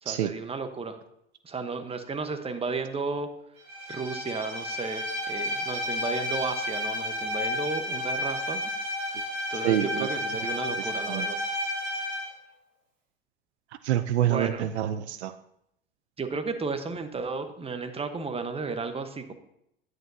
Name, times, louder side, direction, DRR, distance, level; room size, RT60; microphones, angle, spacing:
voice 1, 0.0-1.0 1.4-3.3 3.9-8.6 9.5-11.4 14.3-14.7 16.2-19.3, right 4 dB, 20° right, 8 dB, 1.1 m, -33 dB
Bowed string instrument, 3.7-12.3, left 1 dB, 60° right, 2.6 m, -31 dB
voice 2, 9.6-10.1 11.1-11.3 13.8-15.3, right 11 dB, 80° right, 12 dB, 0.6 m, -26 dB
10.5 x 9.5 x 2.8 m, 0.76 s
hypercardioid pair, 80°, 33 cm